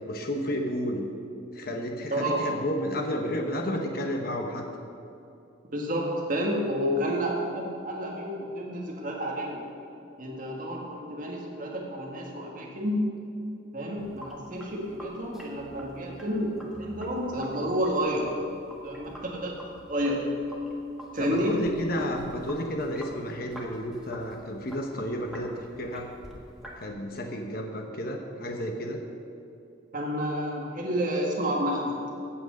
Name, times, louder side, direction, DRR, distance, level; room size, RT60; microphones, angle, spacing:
voice 1, 0.1-1.0 1.5-4.6 21.2-26.1 26.8-29.0, equal, 45° left, 3 dB, 1.1 m, -31 dB
voice 2, 2.1-2.4 5.7-9.6 10.2-13.2 13.7-18.3 18.8-19.6 19.9-20.3 21.1-21.6 29.9-31.9, equal, 40° right, -2 dB, 1.8 m, -30 dB
Sink (filling or washing), 14.0-26.8, equal, ahead, 1.5 m, -47 dB
16.0 x 6.2 x 6.4 m, 2.7 s
head